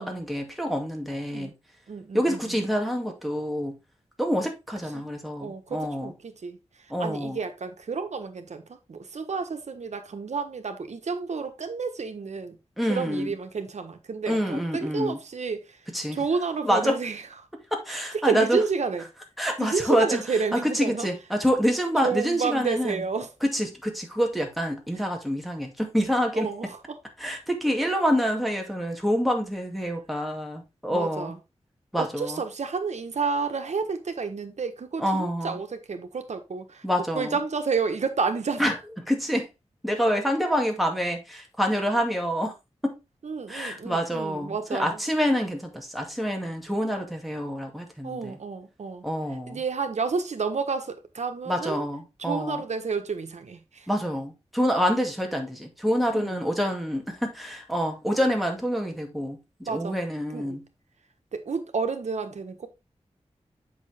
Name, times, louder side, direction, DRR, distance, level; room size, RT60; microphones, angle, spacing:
voice 1, 0.0-1.5 2.1-3.8 4.2-6.1 6.9-7.4 12.8-13.3 14.3-15.2 15.9-16.2 16.6-17.0 17.7-18.6 19.4-20.2 20.5-23.0 23.4-26.5 27.2-31.3 31.9-32.4 35.0-35.6 36.8-37.3 38.6-38.7 39.1-39.5 39.8-42.5 42.8-43.0 43.5-48.4 49.0-49.6 51.5-52.6 53.9-60.6, equal, ahead, 2.2 m, -27 dB
voice 2, 1.9-2.7 4.9-5.1 5.4-6.6 7.0-12.6 12.9-15.8 16.1-17.2 17.9-19.0 19.6-21.1 22.0-23.3 26.3-27.0 30.9-31.4 32.0-36.8 37.1-38.7 43.2-45.0 48.0-49.1 49.5-51.8 52.2-53.9 56.1-56.4 59.7-60.0 60.3-60.6 61.3-62.7, right 5 dB, 85° right, 1.3 m, -30 dB
8.0 x 6.1 x 3.4 m
wide cardioid pair, 105°, 11 cm